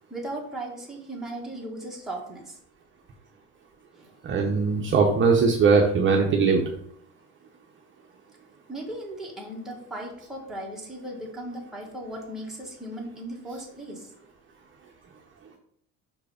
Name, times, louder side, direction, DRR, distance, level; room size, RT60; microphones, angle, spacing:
voice 1, 0.1-2.4 4.0-4.1 8.7-14.1, right 1 dB, ahead, -3 dB, 1.8 m, -37 dB
voice 2, 4.2-6.6, right 4 dB, 35° right, 0 dB, 0.8 m, -20 dB
5.7 x 4.5 x 5.0 m, 0.67 s
cardioid pair, 140°, 35 cm